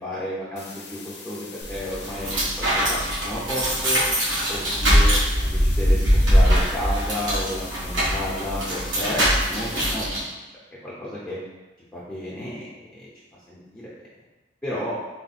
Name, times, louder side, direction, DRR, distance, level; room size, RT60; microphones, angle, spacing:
voice 1, 0.0-4.0 4.5-10.0 10.8-11.4 11.9-13.1 13.5-14.1 14.6-14.9, left 1 dB, 10° left, -9 dB, 0.7 m, -32 dB
sound 1, 0.6-10.0, left 4 dB, 60° left, 0.6 m, -42 dB
sound 2, 1.6-10.2, equal, 85° right, 1.4 m, -22 dB
4.1 x 2.1 x 4.2 m, 1.1 s
head